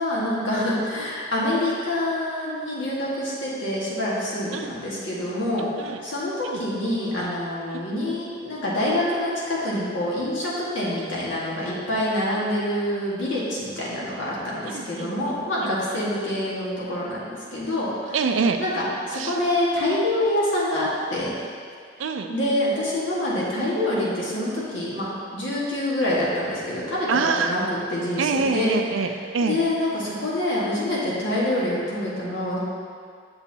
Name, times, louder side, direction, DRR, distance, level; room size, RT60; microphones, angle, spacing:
voice 1, 0.0-18.2 18.6-21.3 22.3-27.1 27.4-27.6 27.9-28.7 29.4-32.6, left 1 dB, 70° left, -7 dB, 1.7 m, -26 dB
voice 2, 14.7-15.1 15.6-15.7 18.1-18.6 19.1-19.4 22.0-22.3 27.1-27.6 28.2-29.6, right 4 dB, 80° right, 6 dB, 0.5 m, -25 dB
7.0 x 6.8 x 2.8 m, 2.1 s
head